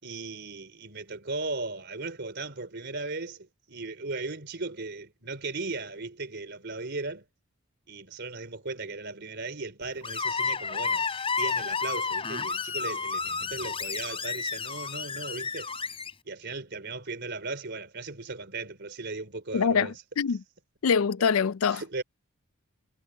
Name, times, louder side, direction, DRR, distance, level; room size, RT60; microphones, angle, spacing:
voice 1, 0.0-7.3 7.9-11.1 11.4-15.7 16.3-19.9 21.6-22.0, right 3 dB, 55° right, 3.8 m, -37 dB
Screech, 10.0-16.1, left 5 dB, 25° left, 3.4 m, -31 dB
voice 2, 19.5-20.4 20.8-22.0, left 6 dB, 80° left, 0.4 m, -25 dB
head